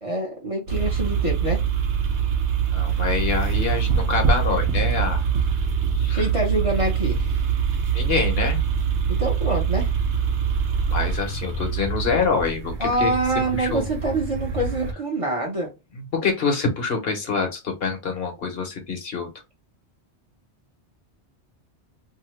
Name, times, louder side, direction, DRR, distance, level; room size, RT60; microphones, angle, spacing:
voice 1, 0.0-1.6 6.1-7.4 9.2-9.9 12.8-15.7, right 1 dB, 35° right, 0.8 m, -25 dB
sound 1, 0.7-14.9, right 6 dB, 80° right, 1.0 m, -24 dB
voice 2, 2.7-5.2 6.0-6.2 7.9-8.6 10.9-13.1 13.5-13.8 16.1-19.3, left 4 dB, 60° left, 1.0 m, -25 dB
2.8 x 2.6 x 3.1 m
omnidirectional pair, 1.1 m